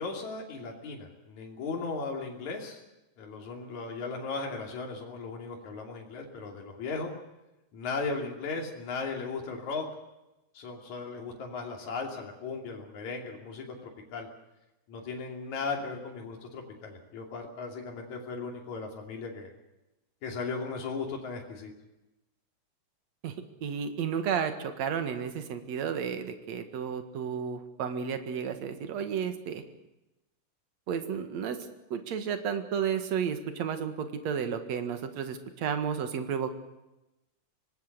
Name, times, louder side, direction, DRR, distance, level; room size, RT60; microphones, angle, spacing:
voice 1, 0.0-2.8 3.2-7.1 7.7-9.8 10.5-13.6 14.1-14.3 14.9-19.5 20.2-21.7, left 4 dB, 70° left, 1 dB, 4.3 m, -36 dB
voice 2, 23.6-29.6 30.9-31.6 31.9-36.5, right 7 dB, 65° right, 8 dB, 2.9 m, -32 dB
25.5 x 19.0 x 6.8 m, 0.98 s
omnidirectional pair, 3.4 m